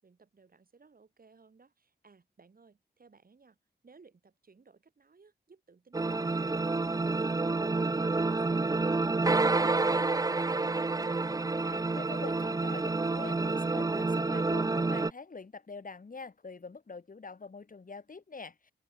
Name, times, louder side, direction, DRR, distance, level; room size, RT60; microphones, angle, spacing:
voice 1, 0.0-3.6 3.8-10.1, right 4 dB, 55° right, 5.8 m, -61 dB
sound 1, 5.9-15.1, right 3 dB, 20° right, 0.5 m, -29 dB
voice 2, 11.5-18.7, left 4 dB, 50° left, 4.0 m, -45 dB
cardioid pair, 70°, 18 cm